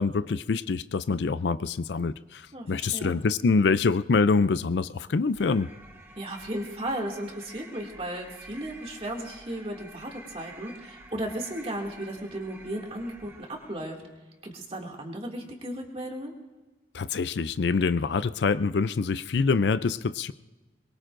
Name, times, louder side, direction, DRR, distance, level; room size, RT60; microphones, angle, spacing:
voice 1, 0.0-5.7 16.9-20.3, left 4 dB, 75° left, 14 dB, 0.5 m, -25 dB
voice 2, 2.5-3.2 6.1-14.0 14.4-16.3, right 1 dB, 35° right, 0 dB, 2.4 m, -35 dB
sound 1, 5.3-13.9, right 1 dB, 10° right, 1.0 m, -49 dB
23.0 x 22.5 x 2.6 m, 1.2 s
head